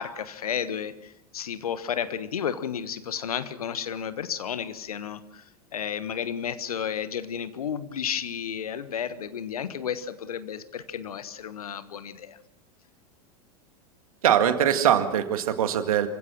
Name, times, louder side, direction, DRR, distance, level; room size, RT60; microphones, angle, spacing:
voice 1, 0.0-5.4 5.7-12.4, left 8 dB, 70° left, 14 dB, 1.3 m, -32 dB
voice 2, 14.2-16.1, right 10 dB, 65° right, 9 dB, 1.9 m, -22 dB
26.5 x 16.0 x 6.2 m, 0.88 s
figure-of-eight pair, 85°, 20 cm